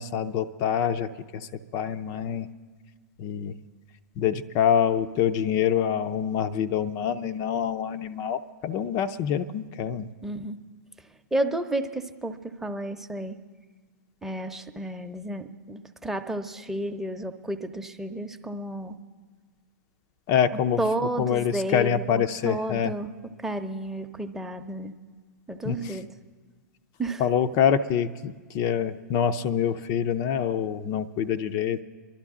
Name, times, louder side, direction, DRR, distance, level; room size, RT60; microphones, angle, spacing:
voice 1, 0.0-2.5 3.2-3.5 4.2-10.1 20.3-20.8 21.2-22.9 25.6-26.0 27.2-31.8, left 8 dB, 40° left, 10 dB, 0.6 m, -26 dB
voice 2, 10.2-10.6 11.3-13.4 14.2-19.0 20.8-23.1 23.4-24.9 25.5-26.1 27.0-27.2, right 1 dB, 5° right, 5 dB, 0.8 m, -31 dB
25.5 x 11.5 x 3.7 m, 1.4 s
hypercardioid pair, 115°, 10 cm